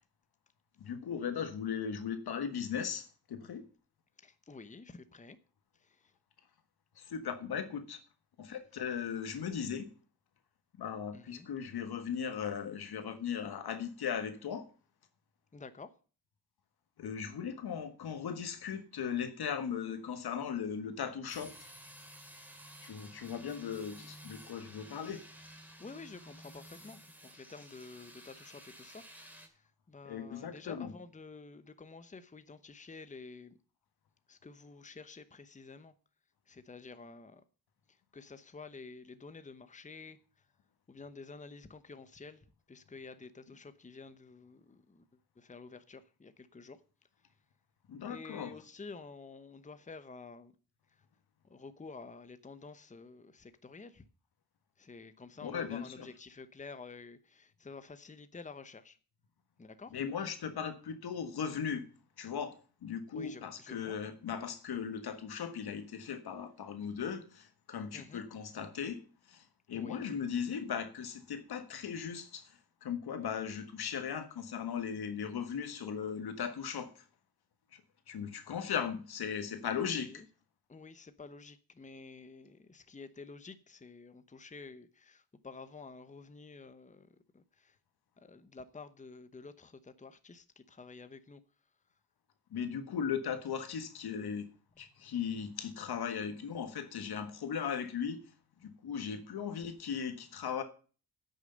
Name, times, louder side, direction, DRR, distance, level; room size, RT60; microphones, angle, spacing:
voice 1, 0.8-3.6 7.0-8.0 8.4-9.9 10.8-14.6 17.0-21.5 22.8-25.2 30.0-30.9 47.9-48.5 55.4-56.1 59.9-61.8 62.2-69.0 69.3-72.4 72.8-76.9 78.1-80.1 92.5-94.5 94.8-98.2 98.6-100.6, left 7 dB, 80° left, 1.5 m, -38 dB
voice 2, 4.2-5.4 5.8-6.0 11.1-11.5 15.5-15.9 25.8-29.4 29.9-33.6 34.3-35.9 36.5-37.4 38.1-40.2 40.9-45.0 45.4-46.8 48.0-50.5 51.5-54.1 54.8-59.0 59.6-59.9 63.1-64.0 67.9-68.2 69.7-70.1 79.7-80.3 80.7-87.1 87.3-87.7 88.2-91.4, left 4 dB, 20° left, 0.9 m, -50 dB
sound 1, 21.3-29.5, equal, 5° right, 2.5 m, -53 dB
9.0 x 6.6 x 7.9 m
cardioid pair, 80°, 37 cm